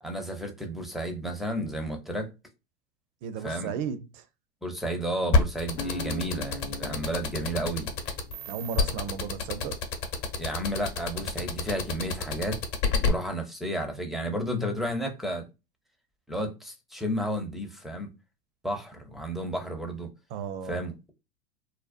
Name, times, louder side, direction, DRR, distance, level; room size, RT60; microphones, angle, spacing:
voice 1, 0.0-2.3 3.4-3.7 4.6-7.9 10.4-12.6 13.0-15.5 16.3-18.1 18.6-20.1 20.7-21.1, right 1 dB, ahead, 0.5 m, -32 dB
voice 2, 3.2-4.2 8.5-9.8 20.3-20.8, right 7 dB, 50° right, 0.5 m, -34 dB
sound 1, 5.3-13.1, left 4 dB, 45° left, 0.9 m, -27 dB
sound 2, 5.8-8.9, left 3 dB, 90° left, 0.5 m, -41 dB
2.6 x 2.0 x 2.4 m
hypercardioid pair, 100°, 32 cm